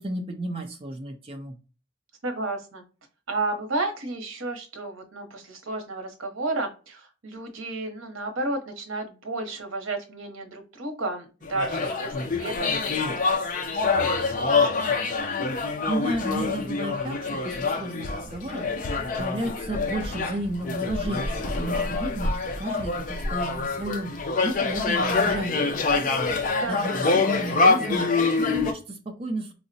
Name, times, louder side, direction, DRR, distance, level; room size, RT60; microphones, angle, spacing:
voice 1, 0.0-1.6 15.9-26.2 26.6-29.5, right 1 dB, 25° right, 2 dB, 0.4 m, -33 dB
voice 2, 2.2-2.8 3.3-14.9 26.5-26.8, right 2 dB, 80° right, 5 dB, 0.8 m, -33 dB
sound 1, 11.4-28.7, left 4 dB, 40° left, 0.4 m, -26 dB
4.7 x 2.1 x 2.6 m, 0.34 s
head